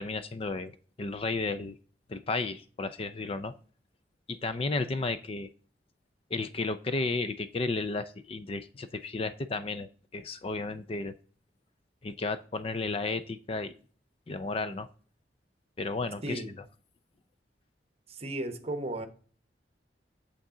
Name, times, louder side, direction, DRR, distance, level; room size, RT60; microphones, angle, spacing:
voice 1, 0.0-1.8 2.1-3.5 4.3-5.5 6.3-11.1 12.0-13.7 14.3-14.9 15.8-16.4, left 3 dB, 35° left, 12 dB, 0.4 m, -33 dB
voice 2, 16.2-16.5 18.1-19.1, right 1 dB, 35° right, 9 dB, 1.0 m, -35 dB
8.6 x 6.7 x 3.7 m, 0.42 s
head